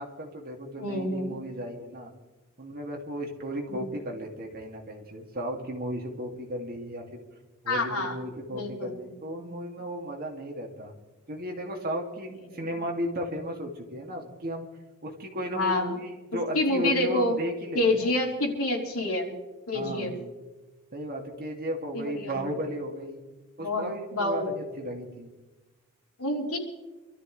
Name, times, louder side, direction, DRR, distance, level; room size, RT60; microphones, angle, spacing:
voice 1, 0.0-2.1 2.6-7.2 7.6-10.9 11.3-14.7 15.0-18.1 19.7-20.3 20.9-23.2 23.6-25.3, equal, 45° right, 1 dB, 2.4 m, -35 dB
voice 2, 0.8-1.3 3.7-4.0 7.7-8.2 8.5-8.9 15.5-15.9 16.5-17.4 17.7-19.3 19.7-20.1 21.9-22.5 23.6-24.5 26.2-26.6, left 1 dB, 75° left, -2 dB, 3.8 m, -27 dB
27.0 x 13.5 x 3.3 m, 1.1 s
head